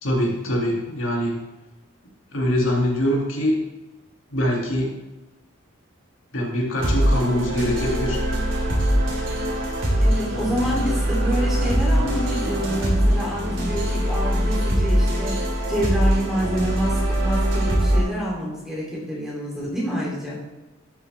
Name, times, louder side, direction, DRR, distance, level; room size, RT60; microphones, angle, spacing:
voice 1, 0.0-1.4 2.3-3.6 4.3-4.9 6.3-8.2, equal, 75° left, -2 dB, 2.5 m, -23 dB
sound 1, 6.8-18.0, equal, 65° right, 3.7 m, -22 dB
voice 2, 10.0-15.4 15.7-20.4, right 1 dB, ahead, -5 dB, 2.9 m, -27 dB
12.5 x 7.4 x 3.4 m, 1.1 s
head